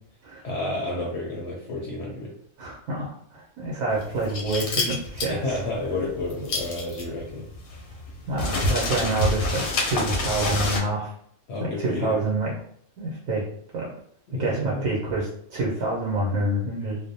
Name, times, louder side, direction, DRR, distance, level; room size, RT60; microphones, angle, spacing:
voice 1, 0.4-2.3 5.3-7.5 11.5-12.2 14.3-14.9, left 2 dB, 65° left, -3 dB, 0.7 m, -30 dB
voice 2, 2.6-5.6 8.3-11.1 11.6-12.5 13.0-13.4 13.7-13.9 14.4-17.0, right 2 dB, 80° right, -4 dB, 1.1 m, -27 dB
sound 1, 3.9-10.8, left 2 dB, 90° left, 1.1 m, -27 dB
2.5 x 2.0 x 2.6 m, 0.66 s
omnidirectional pair, 1.4 m